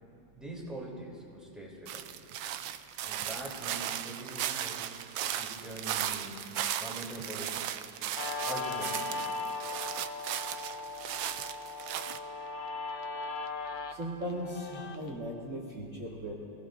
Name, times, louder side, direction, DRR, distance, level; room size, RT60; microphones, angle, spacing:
voice 1, 0.4-2.3 3.0-4.9 5.2-6.4 6.8-7.6 8.4-9.5, right 1 dB, ahead, -4 dB, 3.2 m, -43 dB
sound 1, 1.9-12.2, right 11 dB, 90° right, 1.3 m, -36 dB
Guitar, 8.2-15.2, left 3 dB, 85° left, 1.5 m, -38 dB
voice 2, 14.0-16.3, equal, 45° right, -6 dB, 2.2 m, -37 dB
26.5 x 17.5 x 2.6 m, 2.7 s
omnidirectional pair, 2.0 m